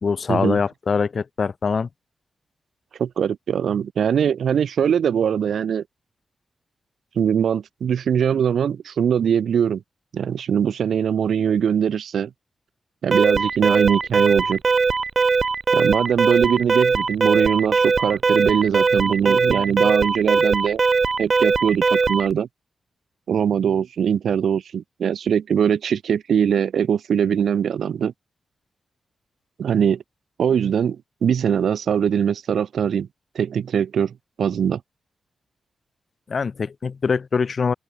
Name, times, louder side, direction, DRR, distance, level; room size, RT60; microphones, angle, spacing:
voice 1, 0.0-1.9 36.3-37.7, left 5 dB, 45° left, 1.3 m, -23 dB
voice 2, 3.0-5.8 7.2-9.8 10.1-12.3 13.0-14.6 15.7-20.8 21.2-22.5 23.3-28.1 29.6-30.0 30.4-31.0 31.2-33.1 33.3-34.8, right 8 dB, 90° right, 2.3 m, -21 dB
Alarm, 13.1-22.3, right 4 dB, 40° right, 0.6 m, -20 dB
open air
wide cardioid pair, 160°, 0 cm